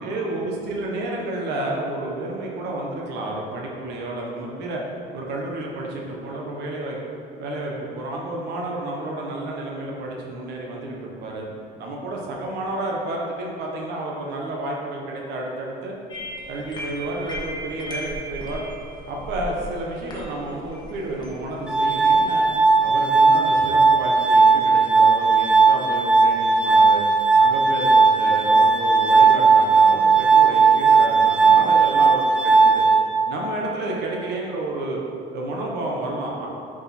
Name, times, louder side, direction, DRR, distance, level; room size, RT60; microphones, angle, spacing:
voice 1, 0.0-4.8 5.1-7.0 7.4-15.9 16.5-18.6 19.1-22.5 22.8-27.0 27.4-32.8 33.2-35.0 35.3-36.5, right 2 dB, 80° right, -1 dB, 1.2 m, -30 dB
sound 1, 16.1-22.7, equal, 25° left, 1.5 m, -37 dB
Glass, 21.7-33.7, right 4 dB, 5° right, 0.4 m, -17 dB
7.1 x 5.3 x 4.4 m, 2.5 s
cardioid pair, 110°, 17 cm